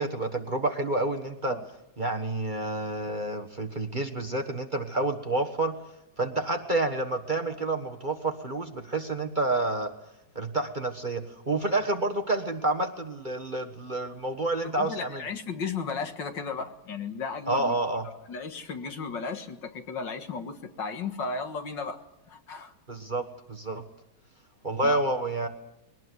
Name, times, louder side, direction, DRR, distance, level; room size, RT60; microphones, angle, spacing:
voice 1, 0.0-1.6 2.0-5.7 6.2-9.9 10.3-15.2 17.5-18.0 22.9-23.8 24.6-25.5, right 2 dB, 25° right, 4 dB, 1.4 m, -29 dB
voice 2, 14.8-17.7 18.0-22.0 22.3-22.7 24.8-25.0, left 5 dB, 70° left, 7 dB, 2.3 m, -35 dB
22.0 x 18.5 x 9.6 m, 0.90 s
omnidirectional pair, 2.1 m